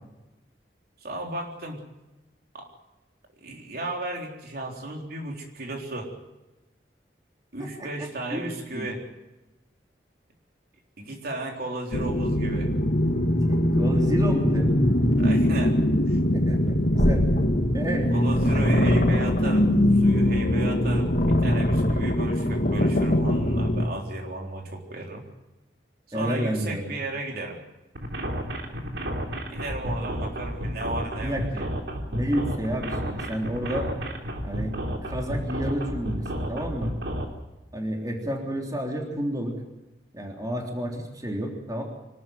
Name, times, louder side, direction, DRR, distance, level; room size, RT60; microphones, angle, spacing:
voice 1, 1.0-1.8 2.5-2.7 3.4-6.1 7.5-9.0 11.0-12.7 15.2-15.8 16.1-16.2 18.1-19.7 19.9-25.2 26.1-27.6 29.5-31.7, right 2 dB, 60° right, 1 dB, 3.8 m, -34 dB
voice 2, 8.3-8.9 13.5-14.7 16.3-17.2 17.7-18.2 20.3-20.4 26.1-26.9 31.2-31.7 32.1-33.9 34.4-34.7 35.0-36.9 37.7-39.6 40.1-41.8, equal, 20° right, 1 dB, 3.4 m, -30 dB
sound 1, 11.9-23.8, left 1 dB, 55° left, 1.9 m, -22 dB
sound 2, 27.9-37.2, equal, 85° right, 3.5 m, -31 dB
25.0 x 13.0 x 9.3 m, 1.0 s
head